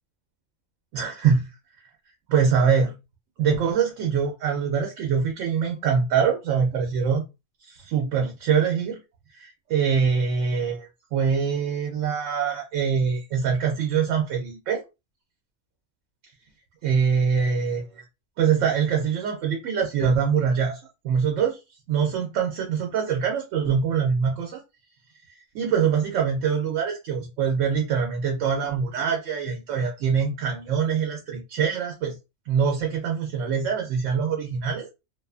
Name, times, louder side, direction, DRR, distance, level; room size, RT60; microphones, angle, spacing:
voice 1, 0.9-1.5 2.3-2.9 3.4-7.2 7.6-9.0 9.3-14.8 16.8-18.0 18.4-21.6 21.9-24.6 25.5-32.1 32.5-34.9, right 6 dB, 80° right, 1 dB, 1.0 m, -24 dB
2.5 x 2.3 x 2.4 m, 0.26 s
omnidirectional pair, 1.3 m